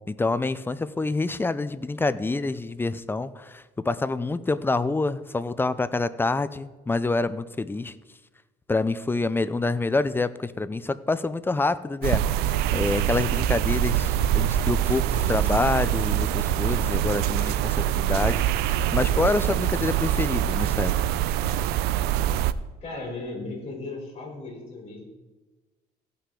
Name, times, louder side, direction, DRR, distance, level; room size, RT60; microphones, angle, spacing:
voice 1, 0.1-7.9 8.7-20.9, left 3 dB, 15° left, 15 dB, 0.4 m, -27 dB
sound 1, 12.0-22.5, right 11 dB, 80° right, 0.4 m, -24 dB
Shatter, 14.8-16.7 17.1-17.4, right 2 dB, 10° right, 1.0 m, -48 dB
voice 2, 22.8-25.0, left 2 dB, 35° left, -1 dB, 3.3 m, -36 dB
16.0 x 5.7 x 3.7 m, 1.2 s
cardioid pair, 100°, 16 cm